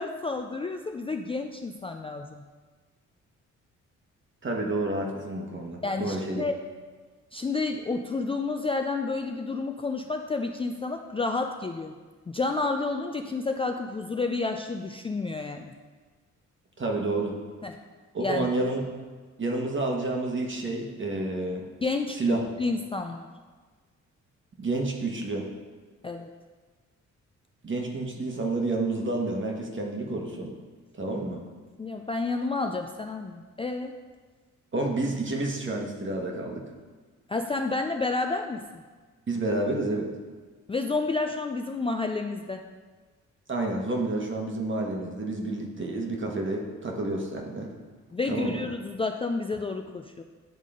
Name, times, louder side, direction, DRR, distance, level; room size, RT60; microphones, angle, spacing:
voice 1, 0.0-2.4 5.8-6.6 7.3-11.9 12.3-15.7 17.6-17.8 18.2-18.5 21.8-23.3 26.0-26.3 31.8-33.9 37.3-38.6 40.7-42.6 48.1-50.2, left 3 dB, 20° left, 4 dB, 0.3 m, -30 dB
voice 2, 4.4-6.4 16.8-17.4 18.1-18.9 19.4-21.7 22.2-22.4 24.6-25.5 27.6-30.5 31.0-31.4 34.7-36.6 39.3-40.1 43.5-47.7 48.3-48.6, right 2 dB, 40° right, 1 dB, 1.3 m, -29 dB
9.3 x 3.6 x 3.7 m, 1.4 s
cardioid pair, 65°, 31 cm